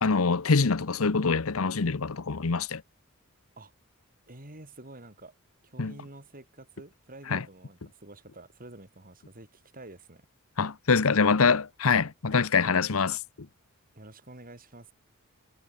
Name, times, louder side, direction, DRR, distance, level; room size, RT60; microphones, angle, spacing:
voice 1, 0.0-2.8 5.8-5.9 7.3-7.4 10.6-13.2, left 5 dB, 75° left, 0.9 m, -24 dB
voice 2, 4.3-5.4 5.6-10.3 13.9-14.9, right 2 dB, 40° right, 4.8 m, -48 dB
head